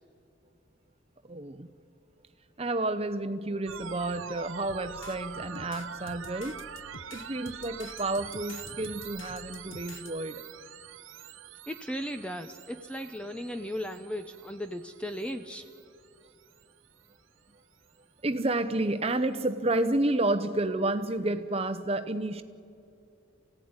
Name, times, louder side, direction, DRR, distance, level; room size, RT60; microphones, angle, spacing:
voice 1, 1.3-1.7 2.6-6.6 7.1-10.4 18.2-22.4, right 2 dB, 30° right, 10 dB, 0.9 m, -30 dB
sound 1, 3.7-17.1, right 8 dB, 75° right, 0.7 m, -45 dB
sound 2, 4.7-10.1, left 4 dB, 70° left, 0.9 m, -49 dB
voice 2, 11.7-15.7, equal, 5° left, 7 dB, 0.7 m, -36 dB
25.5 x 16.5 x 9.7 m, 2.7 s
head